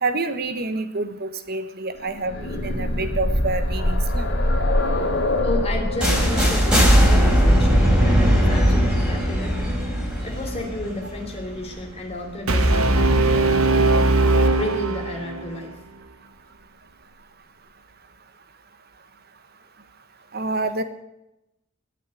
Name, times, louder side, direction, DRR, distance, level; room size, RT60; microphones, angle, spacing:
voice 1, 0.0-4.3 20.3-20.8, right 3 dB, 45° right, 10 dB, 1.3 m, -27 dB
sound 1, 2.1-9.9 11.0-11.1 11.5-11.6, left 1 dB, 55° left, 2.4 m, -25 dB
voice 2, 5.4-9.8 10.2-14.1 14.5-15.7, left 1 dB, 30° left, 2 dB, 3.4 m, -32 dB
sound 2, 6.0-11.8, equal, 5° right, 3.8 m, -18 dB
Brass instrument, 12.5-15.6, right 2 dB, 85° right, 1.4 m, -19 dB
19.5 x 6.8 x 9.1 m, 0.90 s
head